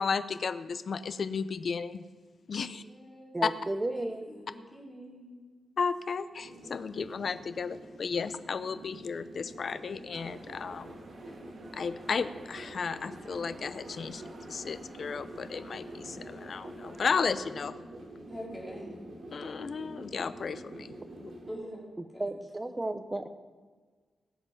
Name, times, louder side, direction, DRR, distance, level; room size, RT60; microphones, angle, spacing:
voice 1, 0.0-2.0 2.5-2.8 3.4-3.5 5.8-11.0 11.7-14.2 14.5-17.8 19.3-20.9 21.2-21.3, left 5 dB, 55° left, 13 dB, 0.5 m, -33 dB
voice 2, 2.6-3.3 3.9-5.7 18.3-18.9 21.5-21.8 22.1-22.3 22.6-22.7, equal, 10° left, -4 dB, 3.8 m, -45 dB
voice 3, 3.3-4.3 22.0-23.3, right 2 dB, 20° right, 9 dB, 0.9 m, -33 dB
sound 1, 6.4-21.5, right 1 dB, 75° right, 2.9 m, -47 dB
sound 2, 10.1-17.3, right 2 dB, 50° right, 2.0 m, -53 dB
17.5 x 7.9 x 5.7 m, 1.4 s
wide cardioid pair, 110°, 0 cm